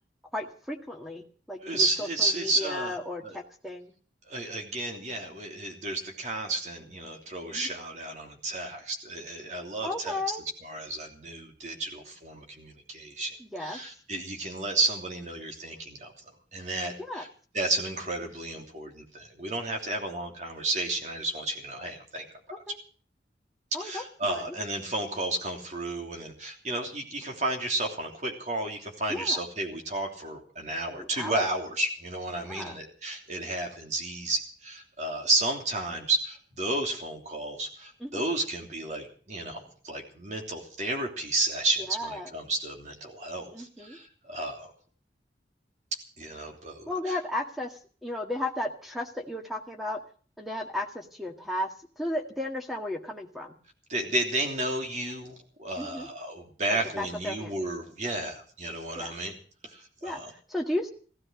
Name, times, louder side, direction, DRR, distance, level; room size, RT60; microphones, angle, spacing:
voice 1, 0.3-3.9 7.5-7.7 9.8-10.4 13.4-13.8 17.0-17.2 22.5-22.8 23.7-24.5 29.1-29.4 31.0-31.5 32.4-32.8 38.0-38.2 41.9-42.3 43.5-44.0 46.9-50.0 50.4-53.6 55.8-56.1 57.0-57.5 59.0-59.1 60.0-60.9, left 1 dB, ahead, 2 dB, 1.7 m, -34 dB
voice 2, 1.6-3.0 3.2-3.4 4.3-10.3 10.6-13.3 13.6-16.1 16.5-17.3 17.5-22.2 23.8-44.7 46.2-47.2 53.9-59.3 59.6-60.3, right 2 dB, 40° right, 2 dB, 3.1 m, -32 dB
16.0 x 12.5 x 6.3 m, 0.42 s
head